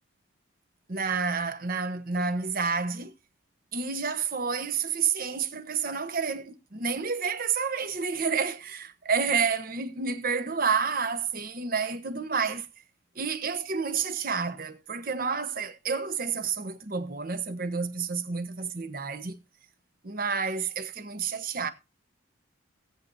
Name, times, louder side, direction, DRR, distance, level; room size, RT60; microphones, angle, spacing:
voice 1, 0.9-3.1 3.7-12.7 13.2-19.4 20.0-21.7, right 5 dB, 45° right, 1.0 m, -29 dB
18.0 x 8.2 x 2.6 m
head